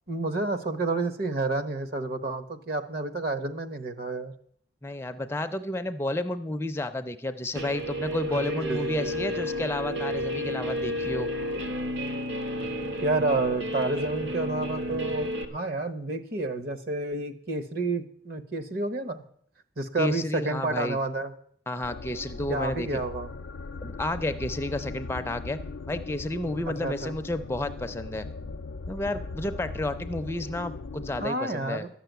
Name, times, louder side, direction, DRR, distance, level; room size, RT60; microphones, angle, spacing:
voice 1, 0.1-4.3 8.3-9.1 13.0-19.2 19.8-21.3 22.5-23.3 26.7-27.1 31.2-31.9, right 2 dB, 55° right, 9 dB, 1.1 m, -30 dB
voice 2, 4.8-11.3 20.0-21.0 21.7-23.0 23.8-25.6 25.9-28.3 28.9-31.8, left 1 dB, 10° left, 9 dB, 0.4 m, -31 dB
Guitar, 7.5-15.4, equal, 70° right, 1.4 m, -31 dB
sound 1, 21.8-31.3, left 3 dB, 75° left, 0.5 m, -39 dB
12.5 x 6.8 x 9.2 m, 0.64 s
head